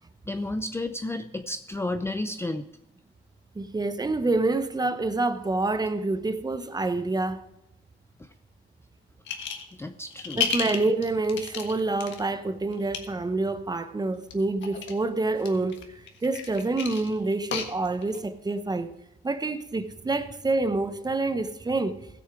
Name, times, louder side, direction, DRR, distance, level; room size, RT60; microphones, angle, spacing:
voice 1, 0.3-2.7 9.8-10.4, left 2 dB, 10° left, 0.5 m, -32 dB
voice 2, 3.5-7.4 10.4-15.8 16.2-18.9 19.2-22.0, right 2 dB, 20° right, 0.8 m, -27 dB
sound 1, 9.3-9.7 10.1-12.2 12.7-13.0 14.2-15.0 15.4-18.2, left 7 dB, 70° left, 1.5 m, -32 dB
16.0 x 6.7 x 4.9 m
cardioid pair, 90°, 20 cm